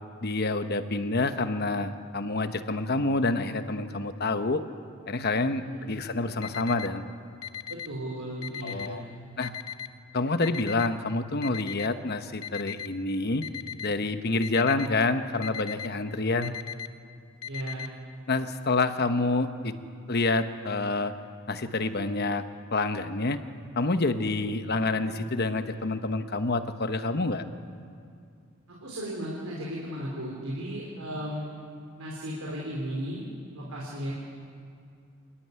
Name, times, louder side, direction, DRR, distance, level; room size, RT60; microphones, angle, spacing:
voice 1, 0.2-4.6 5.1-7.1 8.6-9.0 9.4-9.5 10.1-13.4 13.8-16.6 18.3-19.7 20.1-21.1 21.5-22.4 22.7-23.4 23.8-27.4, left 3 dB, 50° left, 9 dB, 1.0 m, -27 dB
voice 2, 5.5-6.0 7.7-9.1 17.5-17.9 28.7-31.5 32.0-33.3 33.5-34.1, equal, 85° right, -3 dB, 3.8 m, -35 dB
Alarm, 6.4-6.9 7.4-7.9 8.4-8.9 9.4-9.9 10.4-10.9 11.4-11.9 12.4-12.9 13.4-13.9 14.4-14.9 15.4-15.9 16.4-16.9 17.4-17.9, left 9 dB, 85° left, 0.9 m, -37 dB
26.5 x 13.0 x 9.5 m, 2.4 s
head